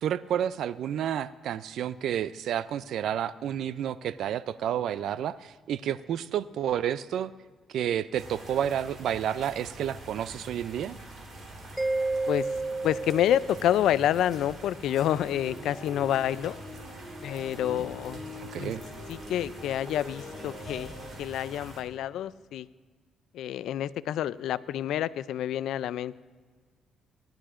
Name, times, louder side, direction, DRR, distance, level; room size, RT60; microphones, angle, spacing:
voice 1, 0.0-7.3 7.7-11.0 18.5-18.8, right 10 dB, 75° right, 15 dB, 0.3 m, -30 dB
sound 1, 8.1-21.8, right 1 dB, 40° right, 3.4 m, -46 dB
Mallet percussion, 11.8-14.3, right 2 dB, 10° right, 0.4 m, -31 dB
voice 2, 12.8-16.6 17.2-18.2 18.6-18.7 19.1-20.9 21.2-22.7 23.3-26.2, left 11 dB, 80° left, 18 dB, 0.3 m, -28 dB
sound 2, 14.9-21.1, left 2 dB, 30° left, 2.8 m, -43 dB
19.0 x 11.5 x 2.5 m, 1.5 s
cardioid pair, 90°, 0 cm